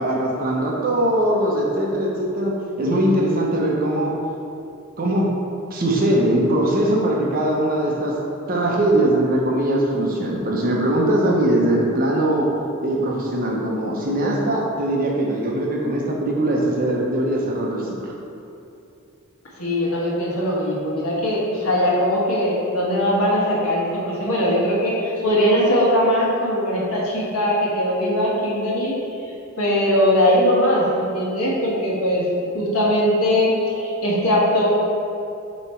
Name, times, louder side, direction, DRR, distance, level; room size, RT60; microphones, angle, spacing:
voice 1, 0.0-2.5 2.8-4.1 5.0-5.3 5.7-8.1 8.5-12.5 12.8-17.9, right 1 dB, 40° right, -2 dB, 0.9 m, -21 dB
voice 2, 19.6-28.9 29.6-32.2 32.5-34.7, equal, 85° left, -5 dB, 1.5 m, -20 dB
7.3 x 3.1 x 4.4 m, 2.7 s
head